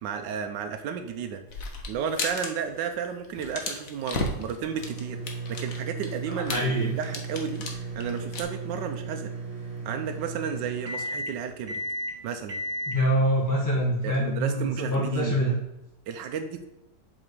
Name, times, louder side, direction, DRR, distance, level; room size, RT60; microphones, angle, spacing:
voice 1, 0.0-1.4 1.9-5.2 5.5-9.3 9.8-11.8 12.2-12.6 14.0-15.4 16.1-16.7, right 7 dB, 85° right, 6 dB, 1.3 m, -33 dB
sound 1, 1.5-2.5 2.8-2.9 3.2-8.4, left 3 dB, 55° left, 1.4 m, -34 dB
sound 2, 4.4-14.7, right 2 dB, 55° right, 0.4 m, -36 dB
voice 2, 6.3-6.9 12.9-15.5, equal, 10° left, -5 dB, 1.3 m, -25 dB
7.7 x 4.3 x 4.7 m, 0.91 s
omnidirectional pair, 1.9 m